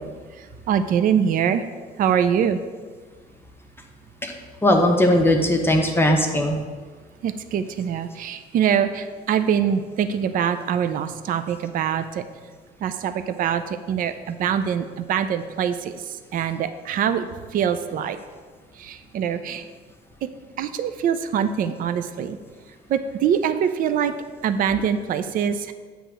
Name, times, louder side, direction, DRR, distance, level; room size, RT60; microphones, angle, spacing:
voice 1, 0.3-1.6 2.0-2.6 7.2-12.3 12.8-18.2 18.7-19.7 20.2-20.3 20.6-22.4 22.9-24.1 24.4-25.7, right 8 dB, 55° right, 10 dB, 0.5 m, -24 dB
voice 2, 4.6-6.6, left 1 dB, 15° left, 2 dB, 0.9 m, -18 dB
8.0 x 3.4 x 6.2 m, 1.5 s
cardioid pair, 110°, 17 cm